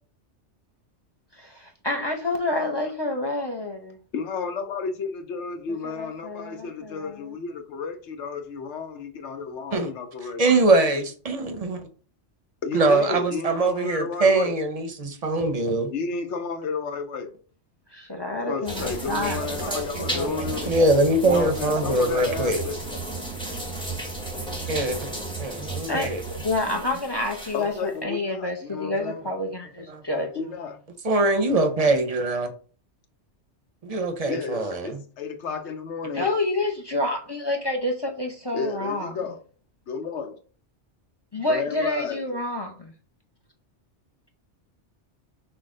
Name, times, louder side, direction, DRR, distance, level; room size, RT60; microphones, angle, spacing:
voice 1, 1.3-4.0 5.8-7.2 17.9-19.7 20.0-20.5 25.9-30.3 36.1-39.1 41.3-42.9, left 2 dB, 30° left, 0.5 m, -28 dB
voice 2, 4.1-10.4 12.6-14.6 15.9-17.3 18.5-20.7 21.2-23.0 27.5-29.2 30.3-30.8 34.3-36.4 38.5-39.4 39.9-40.4 41.5-42.2, left 5 dB, 75° left, 1.0 m, -32 dB
voice 3, 10.4-11.8 12.7-15.9 19.2-19.3 19.7-22.6 24.7-25.0 25.4-26.2 29.9-30.0 31.0-32.5 33.8-35.0, right 2 dB, 40° right, 0.6 m, -23 dB
sound 1, 18.6-27.8, right 2 dB, 5° left, 0.9 m, -33 dB
6.1 x 2.2 x 3.6 m
omnidirectional pair, 1.2 m